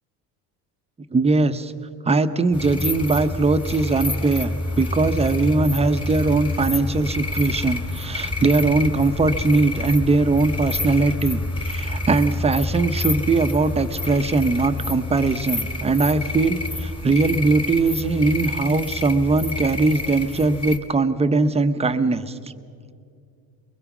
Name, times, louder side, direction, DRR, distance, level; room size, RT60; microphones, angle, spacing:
voice 1, 1.1-1.7 2.0-22.4, right 3 dB, 20° right, 10 dB, 0.9 m, -20 dB
sound 1, 2.5-20.8, left 2 dB, 15° left, 2.3 m, -28 dB
23.5 x 20.5 x 6.1 m, 2.4 s
cardioid pair, 115°, 34 cm